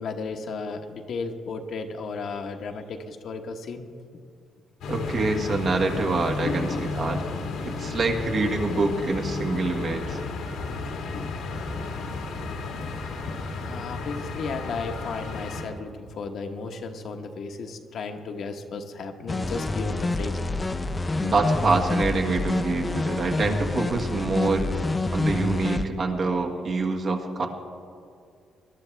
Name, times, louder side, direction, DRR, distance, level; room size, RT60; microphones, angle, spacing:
voice 1, 0.0-3.9 6.4-6.9 10.8-11.3 13.3-20.4, left 4 dB, 65° left, 4 dB, 1.1 m, -34 dB
sound 1, 4.8-15.6, left 3 dB, 85° left, 1.7 m, -32 dB
voice 2, 4.9-6.7 7.0-7.2 7.7-10.2 21.2-24.7 25.1-27.5, right 3 dB, 55° right, 2 dB, 1.7 m, -26 dB
sound 2, 19.3-25.9, left 2 dB, 20° left, 0.6 m, -27 dB
20.0 x 12.0 x 3.4 m, 2.3 s
cardioid pair, 90°, 0 cm